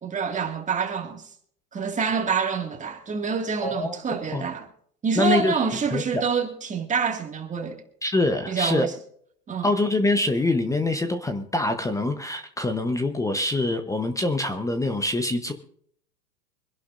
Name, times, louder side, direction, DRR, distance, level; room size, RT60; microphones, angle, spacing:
voice 1, 0.0-1.2 1.7-4.7 5.0-7.8 8.5-8.9 9.5-9.7, right 5 dB, 15° right, 2.0 m, -27 dB
voice 2, 3.6-4.0 4.3-4.4 5.1-5.6 5.9-6.2 8.0-8.9 9.6-15.5, left 2 dB, 5° left, 0.9 m, -24 dB
25.0 x 11.0 x 2.6 m
hypercardioid pair, 115°, 48 cm